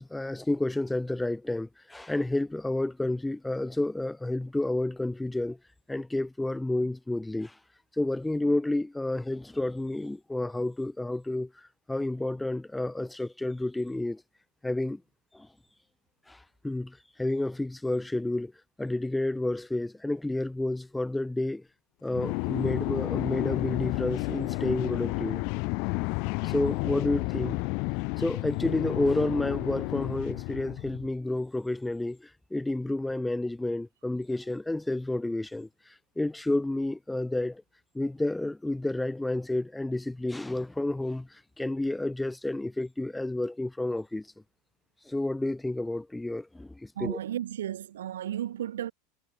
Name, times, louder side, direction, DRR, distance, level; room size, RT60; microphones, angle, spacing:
voice 1, 0.0-5.6 5.9-7.5 8.0-11.5 11.9-14.2 14.6-15.0 15.3-15.5 16.3-16.4 16.6-18.5 18.8-21.6 22.0-25.4 26.4-27.6 28.2-35.7 36.2-37.6 37.9-44.3 45.1-47.2, left 2 dB, 5° left, 0.6 m, -30 dB
sound 1, 22.1-31.1, left 32 dB, 55° left, 1.2 m, -31 dB
voice 2, 47.0-48.9, right 11 dB, 75° right, 0.5 m, -33 dB
figure-of-eight pair, 80°, 0 cm